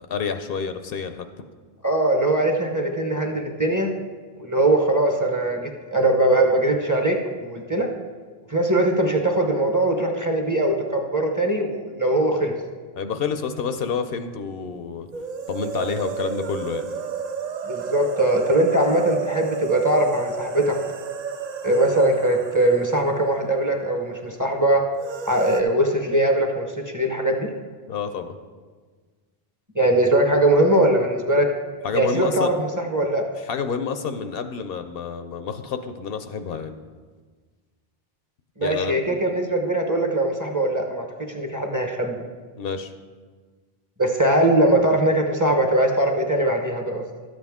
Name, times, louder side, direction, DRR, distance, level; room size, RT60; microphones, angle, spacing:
voice 1, 0.1-1.3 13.0-15.1 15.5-16.9 27.9-28.3 31.8-32.5 33.4-36.8 38.6-39.2 42.6-42.9, left 6 dB, 70° left, 8 dB, 0.8 m, -28 dB
voice 2, 1.8-3.9 4.4-7.9 8.5-12.5 17.7-20.8 21.6-24.8 25.3-27.5 29.7-31.5 31.9-33.2 38.6-42.2 44.0-47.0, right 1 dB, 20° right, 2 dB, 0.9 m, -21 dB
sound 1, 15.1-24.0 24.2-24.3 25.0-25.6, right 5 dB, 50° right, 0.6 m, -32 dB
12.0 x 7.6 x 3.6 m, 1.5 s
omnidirectional pair, 1.0 m